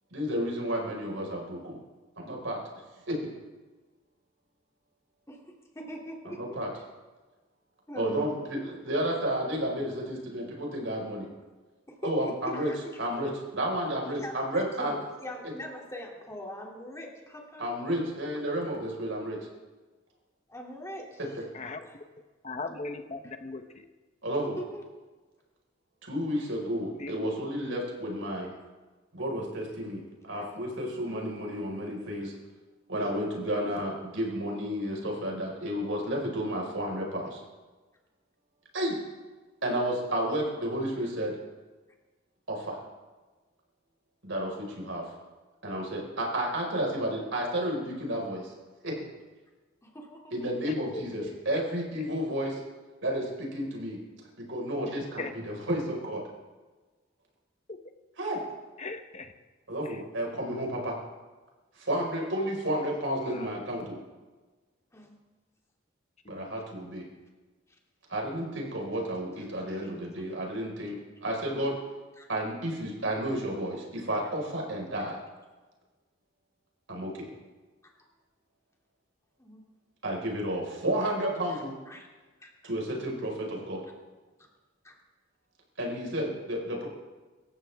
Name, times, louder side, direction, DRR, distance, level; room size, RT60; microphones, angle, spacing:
voice 1, 0.1-1.8 2.2-2.6 3.1-3.2 6.4-6.7 7.9-11.3 12.0-12.7 13.0-14.9 17.6-19.4 24.2-24.6 26.0-28.5 29.1-32.3 32.9-37.4 38.7-39.0 39.6-41.3 42.5-42.8 44.2-45.0 45.6-48.5 48.8-48.9 50.3-52.6 53.0-54.0 54.4-56.2 58.2-58.4 59.7-61.0 61.8-64.0 66.3-67.0 68.1-71.7 72.3-75.2 76.9-77.3 80.0-81.7 82.6-83.8 85.8-86.9, equal, 75° right, -1 dB, 5.0 m, -31 dB
voice 2, 5.3-6.6 7.9-8.3 11.9-13.0 14.2-14.9 15.2-17.7 20.5-21.2 21.8-22.0 23.2-23.3 24.6-24.8 30.4-30.5 41.0-41.1 49.8-50.5 64.9-65.2 69.7-69.9 72.2-72.3 74.2-74.3 75.0-75.1 79.4-79.6 81.5-82.1 82.4-82.7 84.8-85.0, equal, 15° left, -1 dB, 2.8 m, -42 dB
voice 3, 22.4-23.6 27.0-27.3 50.9-51.3 55.2-55.3 58.8-59.3 63.2-63.5 66.3-66.5, left 3 dB, 35° left, 7 dB, 1.0 m, -38 dB
25.5 x 14.0 x 3.6 m, 1.3 s
head